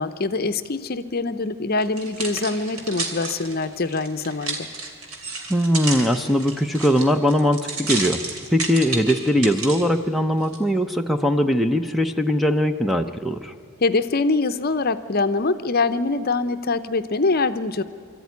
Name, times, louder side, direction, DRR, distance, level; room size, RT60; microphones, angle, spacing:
voice 1, 0.0-4.7 13.8-17.8, left 3 dB, 45° left, 12 dB, 0.7 m, -24 dB
sound 1, 1.8-9.9 10.4-10.6, right 3 dB, 80° right, 2.8 m, -31 dB
voice 2, 5.5-8.2 8.5-13.5, equal, ahead, 7 dB, 0.6 m, -20 dB
24.5 x 13.5 x 9.5 m, 2.4 s
head